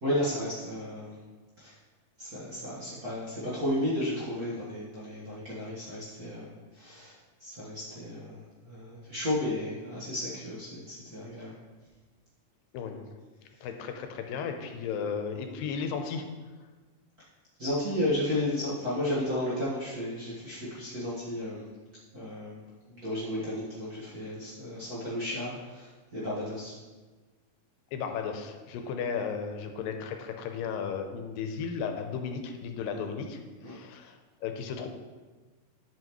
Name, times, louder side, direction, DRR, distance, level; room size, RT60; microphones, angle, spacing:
voice 1, 0.0-1.2 1.6-1.8 2.2-11.6 17.6-21.7 22.1-22.6 22.9-26.7 28.7-28.9 33.6-33.8, left 1 dB, 45° right, -9 dB, 1.2 m, -33 dB
voice 2, 12.7-13.1 13.6-16.2 27.9-34.9, left 6 dB, 90° left, 5 dB, 2.4 m, -35 dB
11.5 x 5.6 x 3.1 m, 1.3 s
omnidirectional pair, 3.9 m